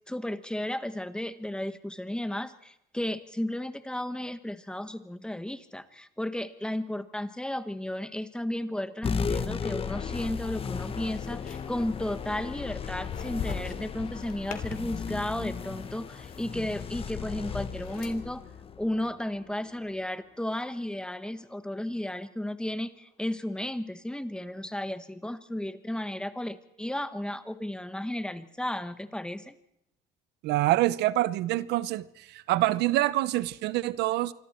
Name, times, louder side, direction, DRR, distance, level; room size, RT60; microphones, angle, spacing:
voice 1, 0.1-18.4 18.8-29.6, left 1 dB, 5° left, 1.4 m, -34 dB
sound 1, 9.0-19.9, left 6 dB, 35° left, 1.2 m, -36 dB
sound 2, 9.9-18.1, left 6 dB, 55° left, 3.3 m, -42 dB
voice 2, 30.4-34.3, right 16 dB, 85° right, 0.8 m, -26 dB
27.0 x 25.0 x 4.4 m
cardioid pair, 110°, 17 cm